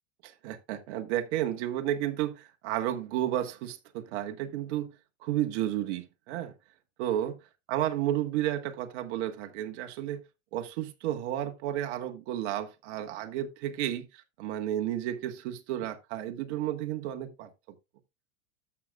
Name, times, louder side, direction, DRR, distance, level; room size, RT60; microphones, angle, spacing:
voice 1, 0.2-4.9 5.2-6.5 7.0-7.4 7.7-10.2 10.5-17.5, right 12 dB, 55° right, 1.5 m, -32 dB
13.0 x 6.6 x 2.3 m
hypercardioid pair, 120°, 39 cm